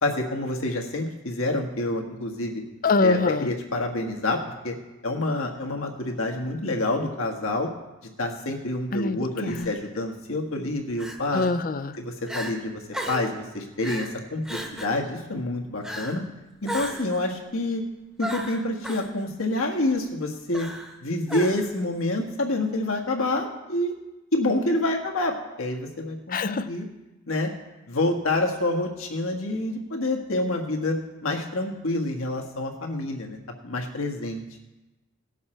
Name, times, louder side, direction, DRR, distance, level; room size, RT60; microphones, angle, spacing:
voice 1, 0.0-2.6 3.0-4.8 5.0-7.7 8.2-11.4 12.0-12.8 13.1-16.2 16.6-17.8 18.2-20.7 21.0-23.9 24.3-26.8 27.3-27.5 27.9-33.4 33.6-34.4, left 2 dB, 80° left, 1 dB, 1.6 m, -27 dB
voice 2, 2.8-3.5 8.9-9.7 11.3-12.0 26.3-26.7, left 3 dB, 40° left, 13 dB, 0.5 m, -25 dB
Crying sobbing, 9.5-9.7 11.0-11.5 11.9-12.0 12.3-12.5 12.9-13.3 13.8-14.1 14.5-15.0 15.8-16.2 16.7-17.2 18.2-19.1 20.5-21.0 21.3-21.8, equal, 5° right, 1.0 m, -34 dB
18.0 x 7.2 x 4.4 m, 1.1 s
head